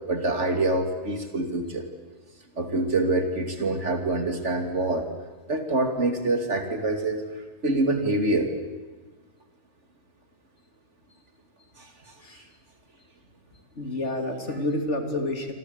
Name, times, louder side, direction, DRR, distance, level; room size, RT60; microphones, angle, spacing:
voice 1, 0.1-1.8 2.6-5.1 5.5-7.2 7.6-8.5 11.8-11.9, right 2 dB, 60° right, 5 dB, 3.1 m, -25 dB
voice 2, 13.8-15.5, left 1 dB, 60° left, 5 dB, 3.3 m, -29 dB
27.5 x 25.5 x 8.2 m, 1.3 s
omnidirectional pair, 1.3 m